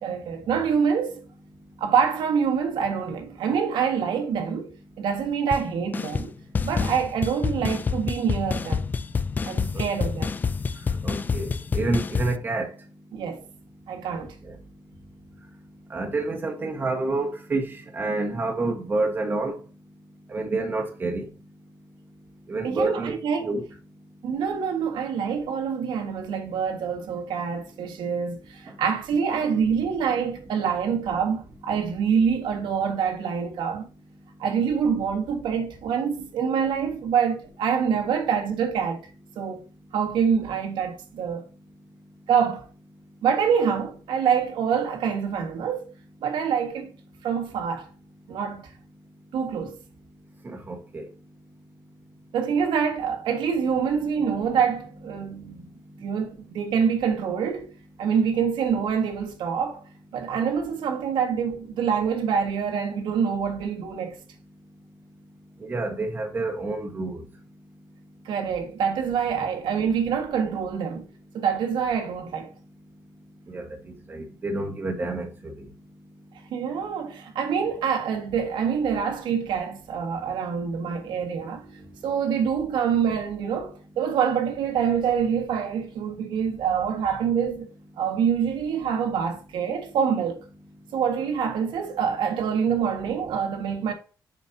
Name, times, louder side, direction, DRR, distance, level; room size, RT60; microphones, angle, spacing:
voice 1, 0.0-1.2 1.8-6.3 6.6-8.9 9.4-10.3 13.1-13.4 13.9-14.3 22.6-23.5 24.2-33.9 34.4-39.0 39.3-39.6 39.9-41.4 42.3-42.7 43.2-45.9 46.2-46.9 47.2-47.9 48.3-48.7 49.3-49.8 52.3-55.7 56.0-57.7 58.0-59.8 60.1-64.2 68.2-71.1 71.3-72.5 76.5-81.6 82.0-87.7 88.0-90.4 90.9-93.9, right 7 dB, 80° right, 1.6 m, -26 dB
sound 1, 5.5-5.6 5.9-6.3 6.5-12.4, left 5 dB, 25° left, 0.3 m, -27 dB
voice 2, 9.7-10.1 11.0-12.7 14.5-14.6 15.9-19.6 20.3-21.2 22.5-23.6 50.4-51.1 65.6-67.2 73.5-73.6 74.1-75.3, right 2 dB, 25° right, 1.3 m, -28 dB
7.2 x 5.4 x 2.7 m
cardioid pair, 170°, 8 cm